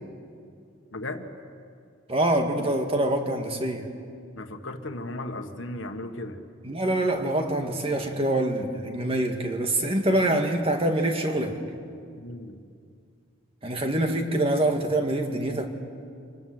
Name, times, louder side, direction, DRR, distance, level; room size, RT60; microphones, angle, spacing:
voice 1, 0.9-1.3 4.4-6.4 12.1-12.6, left 2 dB, 65° left, 5 dB, 1.7 m, -36 dB
voice 2, 2.1-3.8 6.6-11.6 13.6-15.7, right 1 dB, 30° right, 4 dB, 2.0 m, -25 dB
26.5 x 20.0 x 7.9 m, 2.3 s
head